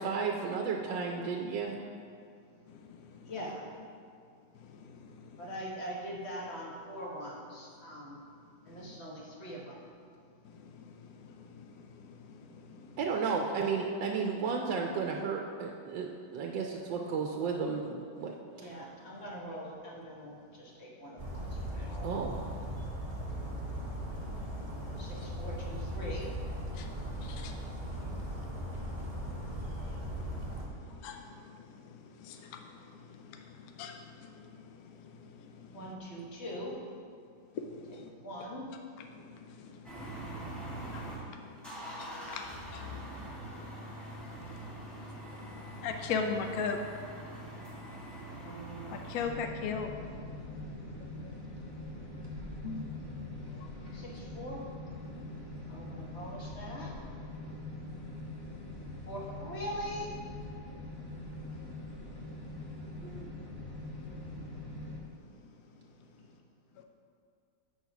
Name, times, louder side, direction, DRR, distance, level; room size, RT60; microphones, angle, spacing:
voice 1, 0.0-1.8 13.0-18.3 18.6-18.7 22.0-22.4 63.0-63.3, right 5 dB, 80° right, 1 dB, 1.3 m, -33 dB
voice 2, 2.7-3.3 4.5-5.5 8.7-9.0 10.4-13.0 23.3-25.3 26.7-35.8 37.5-38.1 39.1-46.8 47.7-47.9 48.1-48.4 48.9-49.9 51.0-51.7 52.3-52.9 53.5-53.7 55.6-55.7 66.8-66.9, left 5 dB, 75° left, 4 dB, 0.8 m, -43 dB
voice 3, 3.2-3.7 5.4-8.2 8.6-9.8 18.6-22.1 25.0-26.3 35.7-36.8 37.9-38.7 48.4-49.0 53.9-54.6 55.7-56.9 59.1-60.1, equal, 40° left, -3 dB, 1.2 m, -42 dB
Bird vocalization bird call bird song, 21.2-30.7, equal, 50° right, 0.4 m, -38 dB
sound 1, 39.8-41.2 41.6-49.3, right 1 dB, ahead, 1.7 m, -43 dB
sound 2, 49.2-65.0, left 2 dB, 15° left, 0.8 m, -43 dB
7.7 x 4.3 x 5.8 m, 2.3 s
omnidirectional pair, 2.1 m